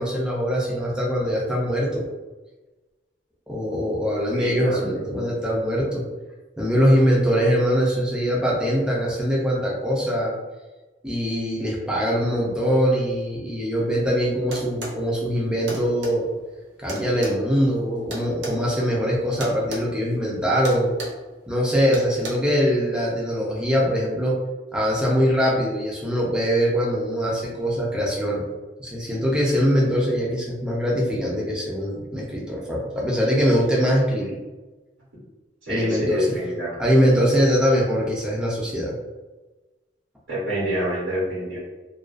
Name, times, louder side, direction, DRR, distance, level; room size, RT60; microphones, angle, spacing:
voice 1, 0.0-2.1 3.5-6.0 6.6-10.3 11.0-16.3 16.8-20.9 21.5-24.4 24.7-28.4 28.8-34.4 35.7-36.3 36.8-38.9, equal, 5° right, -4 dB, 0.4 m, -22 dB
voice 2, 4.3-5.3 35.6-36.7 40.3-41.6, equal, 85° right, -9 dB, 1.0 m, -27 dB
sound 1, 14.5-15.0 15.7-16.2 16.9-18.6 19.4-19.9 20.1-20.3 20.6-21.2 21.9-22.3, right 1 dB, 60° right, 0.6 m, -33 dB
2.3 x 2.2 x 2.4 m, 1.2 s
head